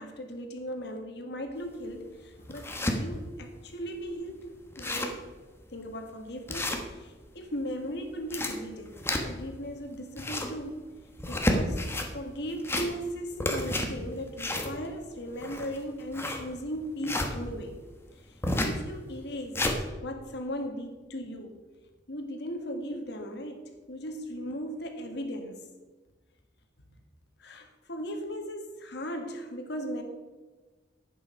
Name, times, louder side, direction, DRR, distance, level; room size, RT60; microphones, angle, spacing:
voice 1, 0.0-4.5 4.8-5.2 5.7-10.9 11.3-17.8 18.2-18.4 18.6-21.6 22.1-25.6 27.4-30.0, equal, 65° left, 4 dB, 1.8 m, -37 dB
sound 1, 1.6-1.7 2.2-3.0 3.5-3.6 3.9-4.0 4.4-4.5 4.7-5.2 5.7-5.8 6.5-7.3 8.0-9.5 10.0-10.6 11.1-12.1 12.5-13.1 13.4-17.3 18.4-18.8 19.2-19.8, left 1 dB, 15° left, 1.3 m, -30 dB
11.0 x 8.7 x 5.6 m, 1.3 s
head